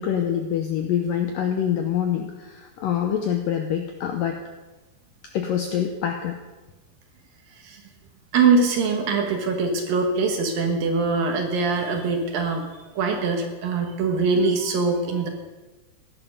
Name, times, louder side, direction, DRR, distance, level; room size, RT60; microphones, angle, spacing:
voice 1, 0.0-4.4 5.3-6.4, left 9 dB, 90° left, 4 dB, 1.9 m, -25 dB
voice 2, 8.3-12.6 13.0-15.3, right 4 dB, 65° right, 3 dB, 2.8 m, -22 dB
16.5 x 11.5 x 5.3 m, 1.2 s
omnidirectional pair, 5.1 m